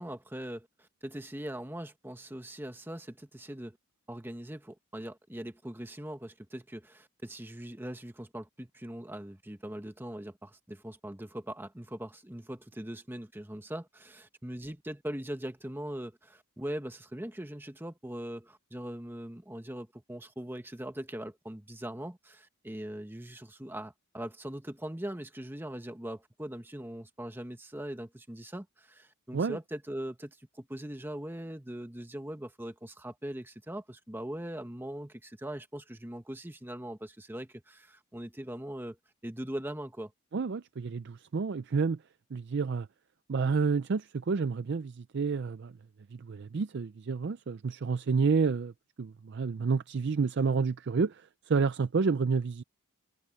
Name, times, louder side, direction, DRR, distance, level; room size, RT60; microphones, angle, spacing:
voice 1, 0.0-3.8 4.1-39.0 39.2-40.1, right 1 dB, 10° right, 1.1 m, -41 dB
voice 2, 40.3-42.0 42.3-42.9 43.3-45.8 46.1-48.7 49.0-52.6, right 5 dB, 50° right, 0.4 m, -29 dB
head